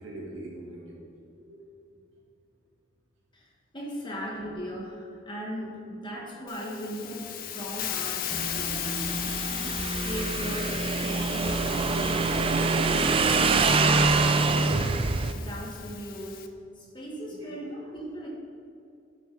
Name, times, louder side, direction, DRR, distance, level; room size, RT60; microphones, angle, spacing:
voice 1, 0.0-2.0 5.5-5.7 9.4-9.9 17.4-17.5, right 1 dB, 75° right, -4 dB, 2.2 m, -44 dB
voice 2, 3.3-9.3 9.6-13.6 13.8-14.9 15.3-16.5 16.7-18.3, equal, 25° left, -2 dB, 1.3 m, -38 dB
Hiss, 6.5-16.5, left 11 dB, 45° left, 0.4 m, -36 dB
Motorcycle / Engine, 8.3-15.3, right 3 dB, 25° right, 0.3 m, -25 dB
11.0 x 6.3 x 3.9 m, 2.6 s
head